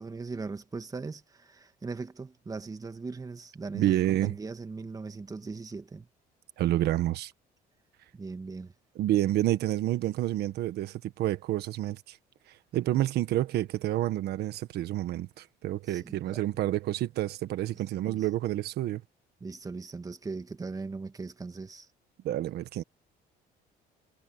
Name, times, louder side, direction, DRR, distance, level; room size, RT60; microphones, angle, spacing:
voice 1, 0.0-6.1 8.1-8.7 15.9-16.5 18.0-18.3 19.4-21.9, right 4 dB, 20° right, 1.8 m, -39 dB
voice 2, 3.7-4.3 6.6-7.3 9.0-12.2 12.7-19.0 22.2-22.8, right 14 dB, 75° right, 1.4 m, -29 dB
cardioid pair, 110°, 17 cm